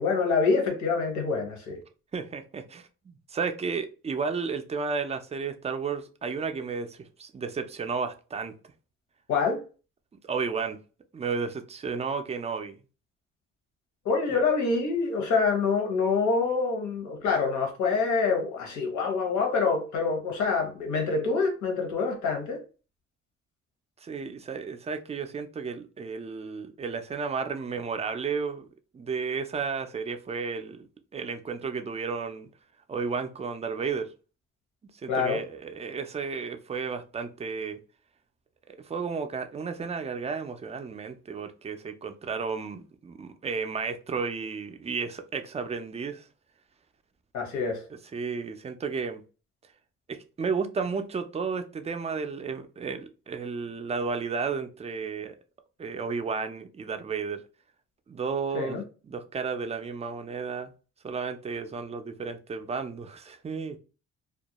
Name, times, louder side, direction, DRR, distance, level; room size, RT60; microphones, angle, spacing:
voice 1, 0.0-1.8 9.3-9.6 14.0-22.6 35.1-35.4 47.3-47.8 58.5-58.8, left 4 dB, 70° left, 0.9 m, -26 dB
voice 2, 2.1-8.5 10.2-10.8 11.1-12.8 14.3-14.4 24.0-28.7 28.9-30.9 31.1-32.5 32.9-34.1 35.0-37.8 38.7-46.3 47.9-49.2 50.1-55.4 55.8-57.4 58.1-58.8 59.0-60.7 61.0-63.8, right 5 dB, 20° right, 0.3 m, -33 dB
2.3 x 2.1 x 2.8 m
cardioid pair, 90°, 30 cm